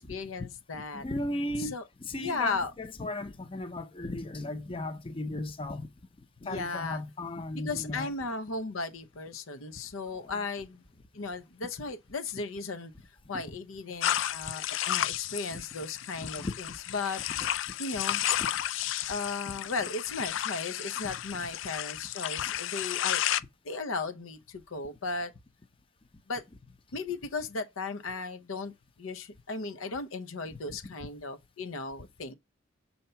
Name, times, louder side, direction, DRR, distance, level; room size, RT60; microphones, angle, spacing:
voice 1, 0.0-1.0 1.7-1.8 2.1-2.7 6.4-7.0 7.6-10.8 11.1-12.9 13.3-17.2 17.8-18.2 19.1-23.2 23.6-25.3 26.3-26.4 26.9-28.7 29.0-32.3, left 3 dB, 90° left, 0.7 m, -36 dB
voice 2, 0.9-5.9 6.4-8.1 10.1-10.4 13.3-13.6 15.5-15.6 16.2-16.8 17.4-17.5 18.4-18.5 21.0-21.1 30.5-30.8, left 1 dB, 25° left, 0.6 m, -36 dB
sound 1, 14.0-23.4, left 12 dB, 65° left, 0.3 m, -32 dB
6.6 x 2.9 x 5.5 m
head